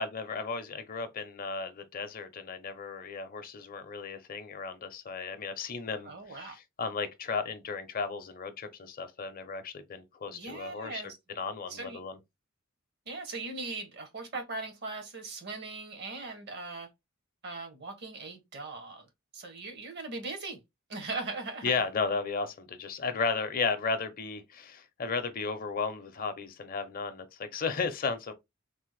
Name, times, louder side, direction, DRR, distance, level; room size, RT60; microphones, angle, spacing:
voice 1, 0.0-11.0 11.4-12.2 21.6-28.3, left 4 dB, 45° left, 0.5 m, -34 dB
voice 2, 6.0-6.5 10.3-11.2 11.7-12.0 13.1-16.9 17.4-19.1 19.3-20.6 20.9-21.7, right 3 dB, 55° right, 0.9 m, -39 dB
3.3 x 2.1 x 3.1 m
head